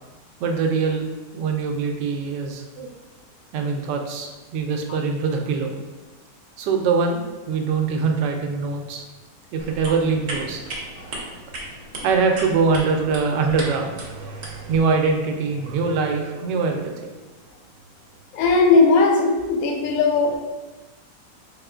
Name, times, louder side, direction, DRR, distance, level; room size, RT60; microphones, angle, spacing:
voice 1, 0.4-1.1 1.3-2.9 3.5-5.7 6.6-9.0 9.5-10.6 11.3-11.4 12.0-17.2, right 4 dB, 85° right, 3 dB, 1.2 m, -23 dB
sound 1, 9.6-14.8, right 2 dB, 55° right, 0.8 m, -36 dB
voice 2, 18.3-20.4, left 3 dB, 70° left, 2 dB, 0.8 m, -17 dB
3.7 x 3.6 x 2.3 m, 1.2 s
omnidirectional pair, 1.9 m